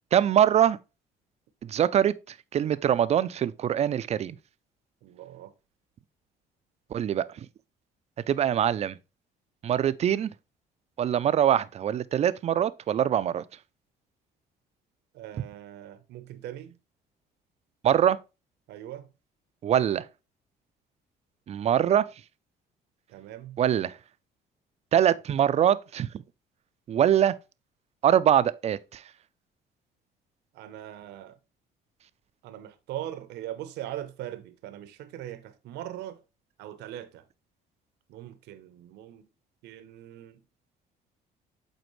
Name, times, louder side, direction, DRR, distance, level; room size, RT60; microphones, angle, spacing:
voice 1, 0.1-0.8 1.6-4.4 6.9-7.2 8.3-9.0 9.6-10.3 11.0-13.4 17.8-18.2 19.6-20.0 21.5-22.1 23.6-24.0 24.9-26.2 26.9-27.4 28.0-29.0, right 10 dB, 40° right, 0.4 m, -23 dB
voice 2, 5.0-5.5 15.1-16.8 18.7-19.1 23.1-23.6 30.5-31.4 32.4-36.2 36.6-37.3 38.1-39.3 39.6-40.4, right 12 dB, 85° right, 0.8 m, -40 dB
7.9 x 4.3 x 3.1 m
cardioid pair, 110°, 17 cm